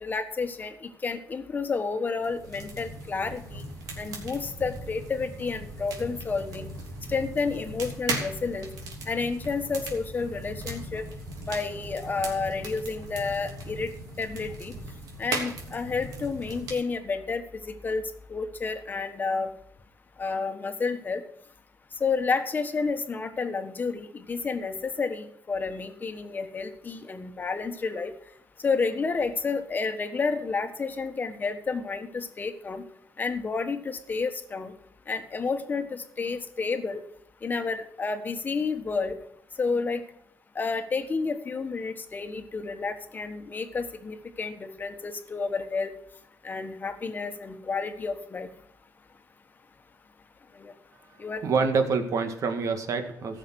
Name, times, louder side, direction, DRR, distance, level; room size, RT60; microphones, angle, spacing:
voice 1, 0.0-3.6 4.0-6.7 7.1-8.7 9.1-11.0 11.5-13.9 14.2-14.7 15.2-17.4 17.8-18.0 18.3-19.5 20.2-21.2 22.0-28.1 28.6-32.8 33.2-34.7 35.1-37.0 37.4-39.1 39.6-40.0 40.5-45.9 46.4-48.5 50.6-50.7 51.2-51.4, left 4 dB, 30° left, 8 dB, 1.4 m, -30 dB
sound 1, 2.2-16.7, right 2 dB, 80° right, 3.2 m, -38 dB
voice 2, 51.2-53.4, right 5 dB, 60° right, 6 dB, 2.0 m, -27 dB
15.0 x 6.7 x 6.4 m, 0.73 s
cardioid pair, 125°, 6 cm